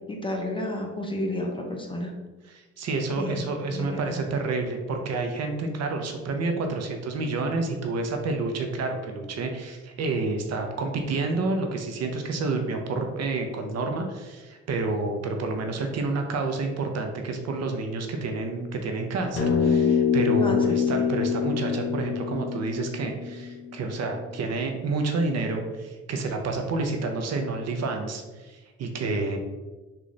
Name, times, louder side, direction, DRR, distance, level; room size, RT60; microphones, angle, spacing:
voice 1, 0.1-2.1 3.1-4.2 20.4-21.0, left 1 dB, 15° left, 1 dB, 0.6 m, -32 dB
voice 2, 2.5-29.4, right 3 dB, 60° right, 4 dB, 0.6 m, -29 dB
sound 1, 19.4-23.9, left 7 dB, 50° left, 0.7 m, -25 dB
3.8 x 2.4 x 3.1 m, 1.2 s
cardioid pair, 90°, 30 cm